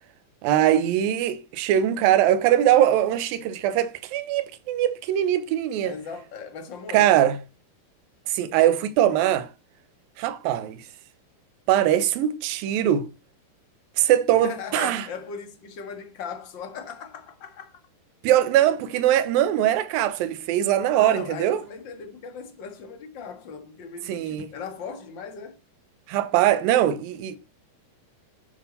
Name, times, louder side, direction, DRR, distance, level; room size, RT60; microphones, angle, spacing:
voice 1, 0.4-5.9 6.9-7.4 8.3-9.5 10.2-10.8 11.7-13.1 14.0-15.0 18.2-21.6 24.1-24.5 26.1-27.4, right 11 dB, 70° right, 2.5 m, -21 dB
voice 2, 5.8-7.3 14.4-17.8 21.0-25.6, left 6 dB, 50° left, 1.4 m, -38 dB
11.0 x 8.9 x 4.1 m
omnidirectional pair, 4.8 m